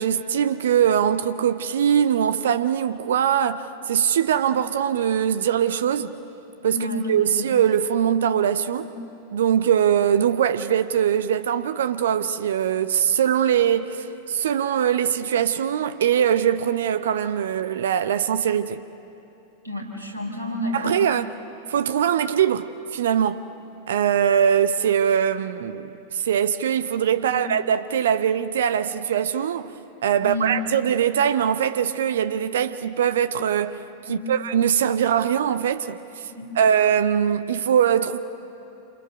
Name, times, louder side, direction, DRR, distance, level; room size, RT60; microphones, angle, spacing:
voice 1, 0.0-6.2 6.6-6.8 7.1-8.9 9.3-18.8 20.7-21.3 21.7-23.4 23.9-29.8 30.0-33.8 34.1-36.3 36.6-38.2, right 9 dB, 60° right, 0.7 m, -22 dB
voice 2, 6.7-7.5 8.8-8.9 19.6-21.0 27.2-27.4 30.2-30.7 34.0-34.3 36.3-36.5, equal, 80° right, 4.4 m, -30 dB
28.0 x 26.5 x 6.9 m
figure-of-eight pair, 90°, 0 cm